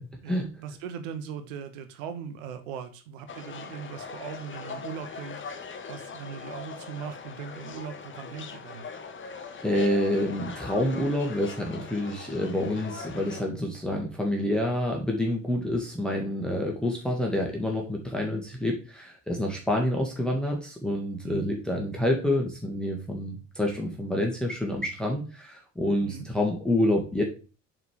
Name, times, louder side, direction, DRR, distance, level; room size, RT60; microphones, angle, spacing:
voice 1, 0.2-8.9 21.2-21.5 26.0-26.3, right 7 dB, 70° right, 10 dB, 1.1 m, -39 dB
sound 1, 3.3-13.4, left 5 dB, 30° left, 1.1 m, -41 dB
voice 2, 9.6-27.2, left 1 dB, ahead, 0 dB, 1.7 m, -28 dB
8.0 x 3.7 x 4.8 m, 0.34 s
figure-of-eight pair, 50°, 41 cm